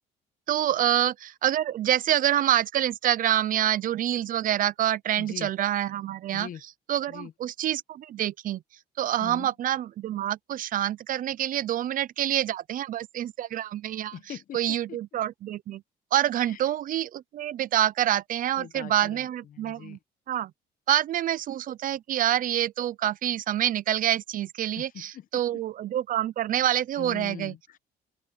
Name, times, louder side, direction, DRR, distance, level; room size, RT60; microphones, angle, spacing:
voice 1, 0.5-6.5 6.9-8.6 9.0-14.1 14.5-15.8 16.1-20.0 20.3-20.5 20.9-27.5, right 12 dB, 55° right, 0.7 m, -27 dB
voice 2, 5.2-5.5 6.3-6.6 7.1-7.3 9.2-9.5 14.1-15.0 16.5-16.6 18.6-20.0 24.8-25.4 27.0-27.8, left 10 dB, 55° left, 1.1 m, -42 dB
open air
cardioid pair, 110°, 17 cm